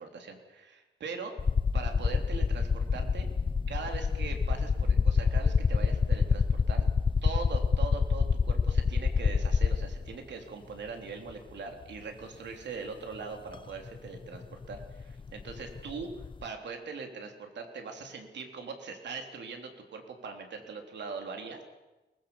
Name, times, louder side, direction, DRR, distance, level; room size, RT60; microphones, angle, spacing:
voice 1, 0.0-1.3 1.7-3.3 3.7-6.9 7.2-16.1 16.4-21.6, right 4 dB, 70° right, 4 dB, 3.3 m, -41 dB
sound 1, 1.4-10.1 11.3-11.4 13.5-13.6 13.9-16.4, left 5 dB, 25° left, 0.8 m, -27 dB
23.5 x 20.0 x 7.1 m, 1.1 s
wide cardioid pair, 150°, 19 cm